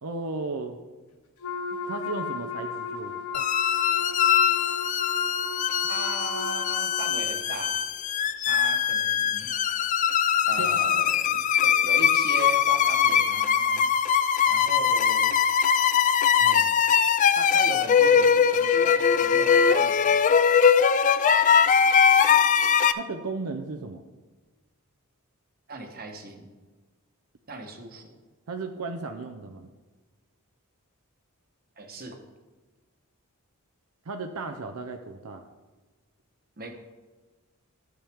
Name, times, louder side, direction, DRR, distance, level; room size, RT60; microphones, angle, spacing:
voice 1, 0.0-0.8 1.9-3.2 10.6-10.9 16.4-16.7 23.0-24.0 28.5-29.7 34.1-35.4, right 3 dB, 75° right, 5 dB, 0.6 m, -35 dB
Wind instrument woodwind instrument, 1.4-7.2, left 5 dB, 80° left, 0.9 m, -35 dB
sound 1, 3.3-22.9, left 7 dB, 35° left, 0.3 m, -21 dB
voice 2, 5.9-7.8 8.5-9.5 10.5-13.9 14.5-15.3 17.3-20.2 25.7-26.5 27.5-28.2 31.8-32.2 36.6-36.7, right 2 dB, 45° right, 5 dB, 1.1 m, -38 dB
13.0 x 7.2 x 3.5 m, 1.3 s
head